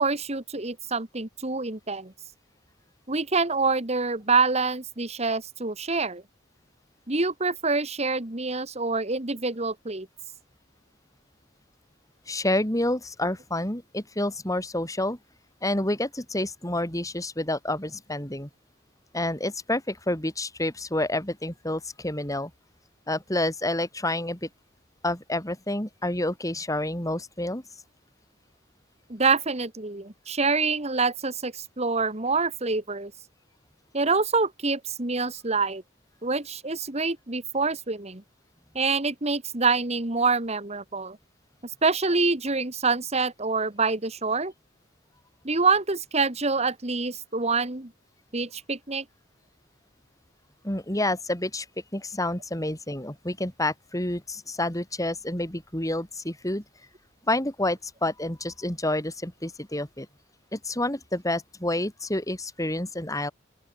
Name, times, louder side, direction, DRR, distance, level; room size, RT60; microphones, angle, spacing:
voice 1, 0.0-2.1 3.1-6.2 7.1-10.1 29.1-33.1 33.9-35.8 36.2-38.2 38.8-41.2 41.8-44.5 45.4-47.9 48.3-49.0, right 4 dB, 35° right, 1.8 m, -26 dB
voice 2, 12.3-15.2 15.6-18.5 19.1-22.5 23.1-24.5 25.0-27.6 50.6-51.7 51.9-56.6 57.3-60.1 60.5-63.3, left 1 dB, 15° left, 4.3 m, -29 dB
open air
head